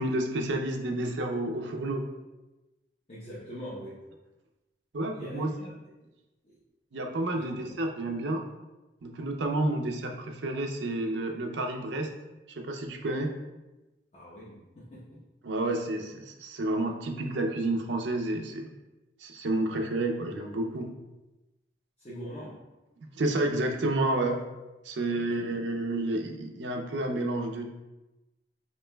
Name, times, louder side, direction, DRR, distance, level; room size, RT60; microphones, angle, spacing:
voice 1, 0.0-2.1 4.9-5.7 6.9-8.4 9.0-12.1 12.5-13.3 15.4-18.7 19.2-20.9 23.2-24.4 24.8-27.7, right 2 dB, 80° right, 3 dB, 0.5 m, -30 dB
voice 2, 3.1-4.0 5.1-5.7 6.4-6.6 7.3-7.7 14.1-15.2 22.0-22.6 25.3-25.4, equal, 35° left, -9 dB, 0.8 m, -43 dB
5.2 x 3.0 x 2.2 m, 1.0 s
head